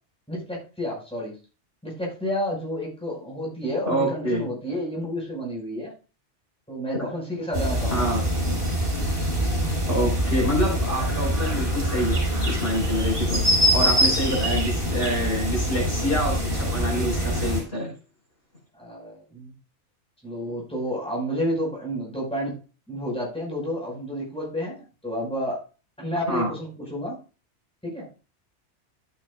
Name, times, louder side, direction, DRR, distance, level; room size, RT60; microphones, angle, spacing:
voice 1, 0.3-1.3 1.8-5.9 6.7-8.1 18.7-19.5 20.2-22.5 22.9-25.6 26.0-27.2 27.8-28.1, equal, 5° left, -4 dB, 5.5 m, -30 dB
voice 2, 3.9-4.4 7.9-8.2 9.9-13.4 13.7-17.9 26.3-26.5, equal, 55° left, -2 dB, 5.4 m, -26 dB
sound 1, 7.5-17.6, equal, 50° right, 5.4 m, -24 dB
13.5 x 9.0 x 2.5 m, 0.34 s
omnidirectional pair, 1.2 m